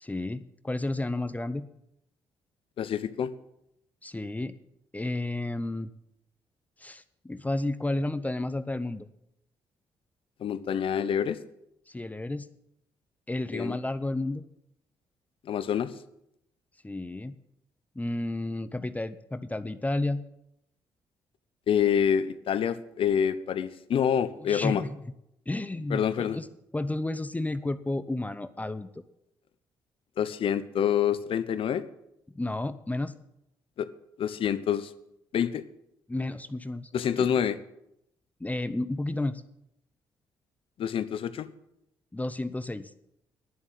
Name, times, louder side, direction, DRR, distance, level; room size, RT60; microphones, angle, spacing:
voice 1, 0.0-1.7 4.0-4.5 4.9-5.9 6.8-9.1 11.9-12.5 13.3-14.4 16.8-17.4 18.0-20.2 24.4-25.0 25.5-26.5 26.7-28.9 32.3-33.1 36.1-36.9 37.2-37.3 38.4-39.4 42.1-42.9, left 2 dB, 15° left, 12 dB, 0.7 m, -32 dB
voice 2, 2.8-3.3 10.4-11.4 13.5-13.8 15.4-15.9 21.7-24.8 25.9-26.4 30.2-31.8 33.8-33.9 34.2-34.9 35.3-35.6 36.9-37.6 40.8-41.5, left 8 dB, 65° left, 14 dB, 0.9 m, -27 dB
10.5 x 7.3 x 8.9 m, 0.81 s
supercardioid pair, 55°, 10 cm